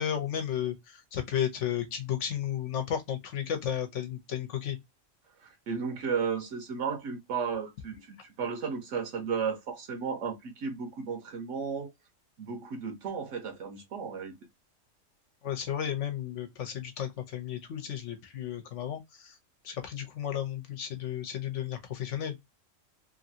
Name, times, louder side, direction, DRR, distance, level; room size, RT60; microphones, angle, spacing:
voice 1, 0.0-4.8 15.4-19.3 19.6-22.4, left 10 dB, 70° left, 1.0 m, -33 dB
voice 2, 5.4-11.9 12.4-14.4, right 6 dB, 75° right, 1.0 m, -34 dB
2.9 x 2.5 x 2.7 m
omnidirectional pair, 1.3 m